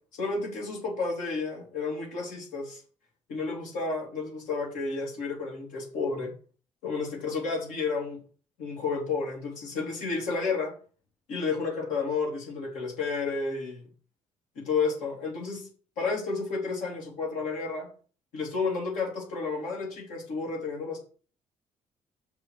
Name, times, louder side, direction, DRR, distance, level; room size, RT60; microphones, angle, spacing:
voice 1, 0.2-2.8 3.3-6.3 6.8-8.2 8.6-10.7 11.3-13.8 14.5-15.7 16.0-17.9 18.3-21.0, left 4 dB, 90° left, -2 dB, 3.1 m, -31 dB
5.8 x 5.5 x 6.4 m, 0.40 s
cardioid pair, 75°, 13 cm